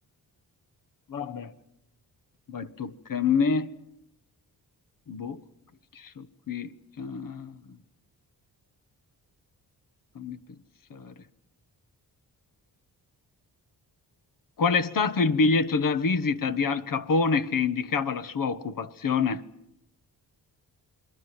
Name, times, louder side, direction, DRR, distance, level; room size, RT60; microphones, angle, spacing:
voice 1, 1.1-1.5 2.5-3.7 5.1-5.4 5.9-6.7 7.0-7.6 10.1-10.4 10.9-11.1 14.6-19.4, left 4 dB, 55° left, 1.4 m, -26 dB
27.5 x 22.5 x 7.6 m
cardioid pair, 90°, 39 cm